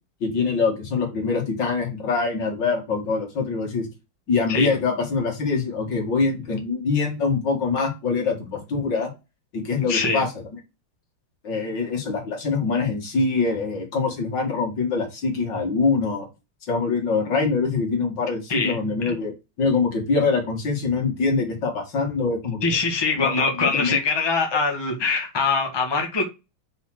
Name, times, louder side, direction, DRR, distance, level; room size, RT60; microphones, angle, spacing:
voice 1, 0.2-3.9 4.3-9.1 9.5-10.3 11.4-16.3 16.7-19.3 19.6-22.8 23.2-24.0, left 4 dB, 60° left, 2.5 m, -24 dB
voice 2, 9.9-10.2 18.5-18.8 22.6-26.2, left 4 dB, 15° left, 1.3 m, -23 dB
5.6 x 4.1 x 5.9 m
omnidirectional pair, 2.2 m